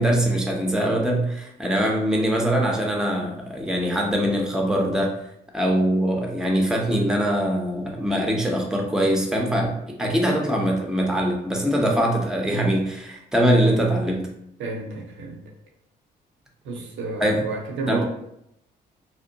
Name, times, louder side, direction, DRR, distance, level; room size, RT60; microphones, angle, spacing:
voice 1, 0.0-5.1 5.5-14.3 17.2-17.4 17.9-18.0, right 1 dB, 5° right, 0 dB, 0.7 m, -22 dB
voice 2, 14.6-15.4 16.6-18.0, right 3 dB, 65° right, -1 dB, 0.7 m, -31 dB
2.7 x 2.1 x 2.7 m, 0.75 s
hypercardioid pair, 50°, 21 cm